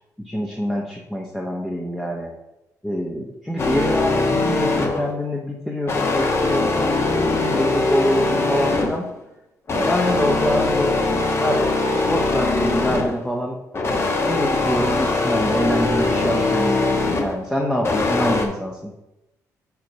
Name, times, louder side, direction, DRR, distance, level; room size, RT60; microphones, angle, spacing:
voice 1, 0.2-2.3 2.8-9.0 9.7-11.0 11.4-13.6 14.3-18.9, equal, 5° left, -2 dB, 0.9 m, -25 dB
sound 1, 3.6-5.2 5.9-9.1 9.7-13.2 13.7-17.4 17.8-18.5, left 3 dB, 40° left, 1.1 m, -21 dB
5.0 x 4.8 x 5.3 m, 0.95 s
cardioid pair, 90°, 7 cm